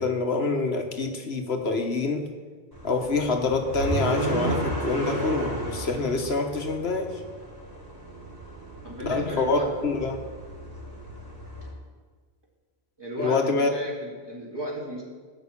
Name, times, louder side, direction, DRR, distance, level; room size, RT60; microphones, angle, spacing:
voice 1, 0.0-2.3 2.8-7.1 9.0-10.2 13.2-13.7, left 3 dB, 85° left, 4 dB, 1.6 m, -26 dB
sound 1, 2.7-11.7, right 1 dB, 20° left, 5.1 m, -33 dB
voice 2, 8.8-9.7 13.0-15.0, equal, 25° right, -4 dB, 3.4 m, -34 dB
17.5 x 6.0 x 8.6 m, 1.5 s
omnidirectional pair, 1.0 m